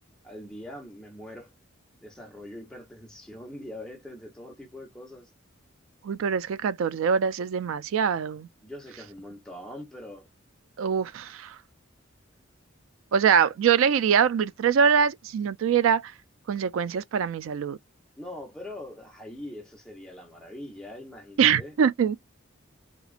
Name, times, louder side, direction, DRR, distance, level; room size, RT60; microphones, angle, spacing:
voice 1, 0.2-1.5 2.0-5.3 8.6-10.3 18.2-21.7, left 1 dB, 5° left, 0.9 m, -42 dB
voice 2, 6.0-8.5 10.8-11.6 13.1-16.1 16.5-17.8 21.4-22.2, right 7 dB, 80° right, 0.3 m, -23 dB
2.9 x 2.4 x 2.4 m
head